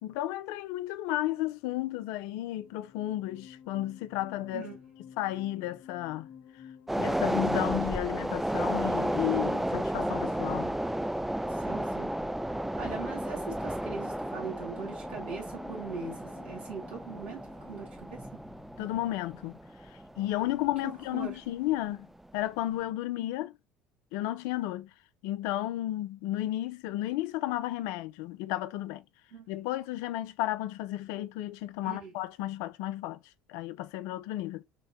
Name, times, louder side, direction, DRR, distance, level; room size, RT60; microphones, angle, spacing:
voice 1, 0.0-4.7 5.2-6.3 7.0-10.7 18.8-19.6 19.9-22.1 22.3-23.5 24.1-24.9 25.2-29.0 29.5-33.2 33.5-34.6, left 15 dB, 70° left, 0.4 m, -33 dB
sound 1, 2.3-20.8, left 7 dB, 50° left, 0.7 m, -53 dB
sound 2, 6.9-21.4 21.8-21.9, right 1 dB, 5° right, 0.3 m, -33 dB
voice 2, 11.5-12.1 12.8-18.2 20.8-21.4 29.3-29.5 31.8-32.1, right 5 dB, 85° right, 1.7 m, -41 dB
5.8 x 2.1 x 2.5 m
hypercardioid pair, 65°, 5 cm